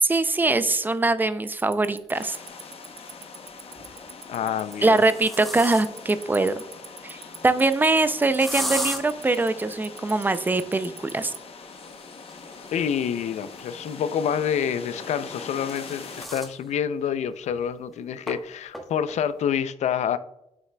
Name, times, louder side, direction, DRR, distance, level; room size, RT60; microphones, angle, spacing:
voice 1, 0.0-2.4 4.8-6.5 7.0-11.3, right 2 dB, 15° right, 0.4 m, -22 dB
Tick-tock, 1.5-11.4, right 8 dB, 60° right, 0.6 m, -39 dB
sound 1, 2.0-2.1 3.6-4.0 4.6-6.2 8.4-9.0 11.6-14.2 15.2-16.6 17.0-17.1 17.5-17.6 18.3-18.4 18.7-19.1, equal, ahead, 1.1 m, -35 dB
sound 2, 2.1-16.3, left 4 dB, 60° left, 0.8 m, -43 dB
voice 2, 4.3-5.0 12.7-20.2, left 8 dB, 90° left, 0.4 m, -27 dB
7.6 x 5.8 x 2.2 m
wide cardioid pair, 130°, 11 cm